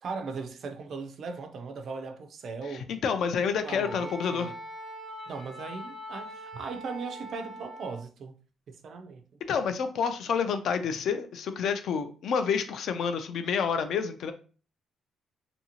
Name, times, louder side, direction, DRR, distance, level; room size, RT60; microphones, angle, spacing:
voice 1, 0.0-2.9 3.6-4.6 5.3-8.3 8.7-9.2, right 4 dB, 45° right, 0.4 m, -38 dB
voice 2, 2.7-4.5 9.5-14.3, left 6 dB, 55° left, 0.3 m, -29 dB
Wind instrument woodwind instrument, 3.8-8.0, equal, 15° left, 0.6 m, -42 dB
2.7 x 2.6 x 2.8 m
cardioid pair, 175°, 0 cm